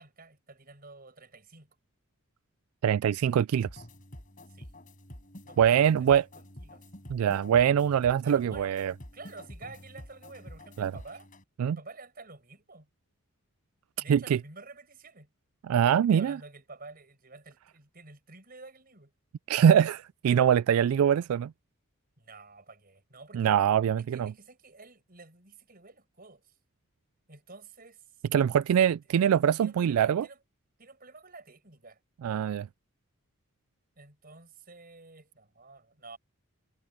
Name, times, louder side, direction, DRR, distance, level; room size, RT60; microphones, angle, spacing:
voice 1, 0.0-1.7 4.5-4.7 5.4-5.9 6.6-6.8 8.2-11.3 11.7-12.9 14.0-15.3 16.1-19.1 22.2-23.5 24.0-26.5 27.3-28.1 28.4-28.9 29.6-30.4 30.8-32.0 34.0-36.2, right 3 dB, 45° right, 5.9 m, -50 dB
voice 2, 2.8-3.8 5.6-6.2 7.1-8.9 10.8-10.9 11.6-11.8 14.1-14.4 15.6-16.4 19.5-21.5 23.3-24.3 28.3-30.3 32.2-32.7, right 8 dB, 80° right, 0.3 m, -23 dB
sound 1, 3.6-11.4, left 1 dB, 40° left, 5.0 m, -48 dB
head